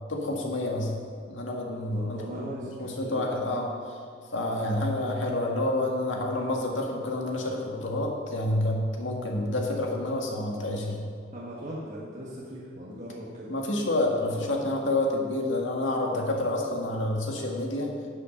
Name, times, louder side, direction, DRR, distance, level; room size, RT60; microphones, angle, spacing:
voice 1, 0.1-0.9 1.3-2.5 2.8-3.7 4.3-11.0 13.5-17.9, left 1 dB, 85° left, 0 dB, 1.9 m, -28 dB
voice 2, 1.7-3.3 11.3-13.5 16.8-17.1, equal, 40° right, -7 dB, 1.6 m, -40 dB
11.0 x 7.4 x 6.4 m, 2.1 s
head